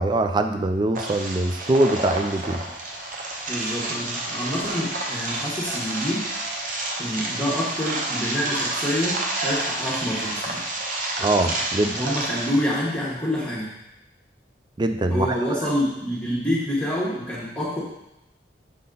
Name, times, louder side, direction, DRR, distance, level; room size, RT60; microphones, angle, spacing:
voice 1, 0.0-2.6 11.2-11.9 14.8-15.3, right 2 dB, 25° right, 7 dB, 0.4 m, -22 dB
sound 1, 0.9-12.6, right 2 dB, 50° right, 0.9 m, -29 dB
voice 2, 3.5-6.3 7.0-10.7 11.8-13.7 15.1-17.8, equal, 10° left, -8 dB, 1.2 m, -27 dB
6.5 x 4.1 x 3.9 m, 0.88 s
head